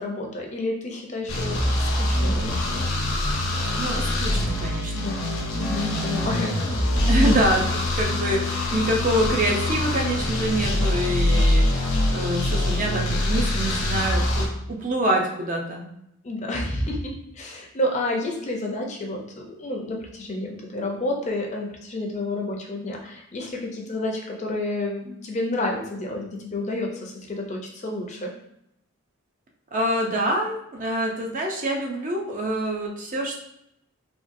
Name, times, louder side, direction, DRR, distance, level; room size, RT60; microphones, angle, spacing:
voice 1, 0.0-2.8 4.9-5.2 5.5-6.5 7.2-7.4 16.2-28.3, left 1 dB, 35° left, 0 dB, 0.5 m, -30 dB
sound 1, 1.3-14.5, left 1 dB, 90° left, 0.8 m, -24 dB
voice 2, 3.8-5.2 6.3-6.6 7.1-15.9 29.7-33.4, right 1 dB, 40° right, 0 dB, 0.5 m, -26 dB
3.6 x 2.3 x 2.6 m, 0.79 s
head